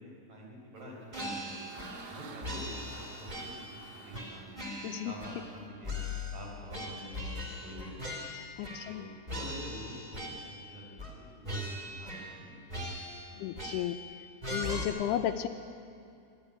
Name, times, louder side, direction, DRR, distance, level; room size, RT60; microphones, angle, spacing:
voice 1, 0.0-1.7 2.1-4.6 5.0-8.3 8.8-12.9 13.3-13.4, equal, 50° right, -2 dB, 5.9 m, -47 dB
sound 1, 1.0-5.7, right 5 dB, 70° right, 3.8 m, -51 dB
sound 2, 1.1-2.1 2.4-3.8 4.1-5.6 5.8-9.0 9.3-10.6 11.0-11.2 11.4-12.4 12.7-14.1 14.4-14.8, left 1 dB, 15° right, 1.8 m, -40 dB
voice 2, 4.8-5.2 8.6-9.1 13.4-14.0 14.5-15.5, left 11 dB, 80° left, 6 dB, 2.7 m, -33 dB
24.5 x 13.0 x 9.8 m, 2.6 s
omnidirectional pair, 4.8 m